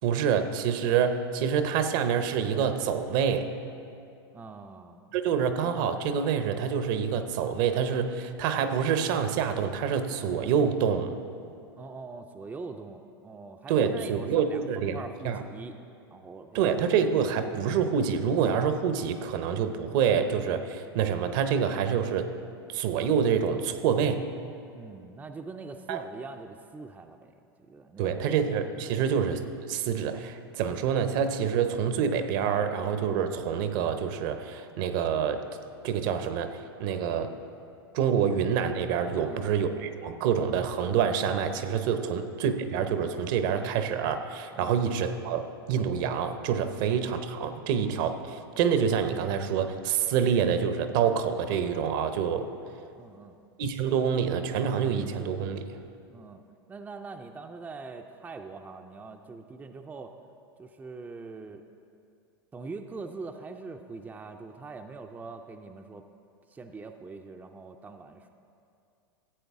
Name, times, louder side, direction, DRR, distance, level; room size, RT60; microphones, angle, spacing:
voice 1, 0.0-3.5 5.1-11.2 13.7-15.0 15.2-15.4 16.5-22.3 22.7-24.3 25.9-26.0 28.0-35.5 35.8-37.4 37.9-52.5 53.6-55.8, right 7 dB, 55° right, 9 dB, 0.7 m, -27 dB
voice 2, 4.3-5.1 11.7-15.8 16.1-16.6 24.7-27.3 27.6-28.3 39.1-39.5 42.0-42.1 44.6-44.7 46.7-46.8 52.9-53.4 56.1-56.4 56.7-60.2 60.6-61.7 62.5-66.1 66.5-68.3, right 4 dB, 15° right, 5 dB, 0.4 m, -43 dB
14.5 x 8.0 x 3.6 m, 2.5 s
hypercardioid pair, 100°, 13 cm